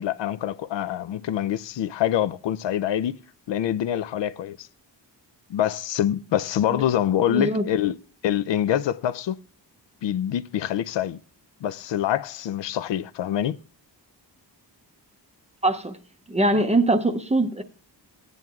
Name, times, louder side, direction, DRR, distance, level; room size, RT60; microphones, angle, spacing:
voice 1, 0.0-3.2 3.5-4.7 5.5-8.0 8.2-9.4 10.0-11.2 11.6-13.6, left 11 dB, 85° left, 0.5 m, -25 dB
voice 2, 7.3-7.6 15.6-16.0 16.3-17.6, right 1 dB, 15° right, 0.5 m, -22 dB
17.0 x 9.2 x 2.3 m
wide cardioid pair, 175°, 42 cm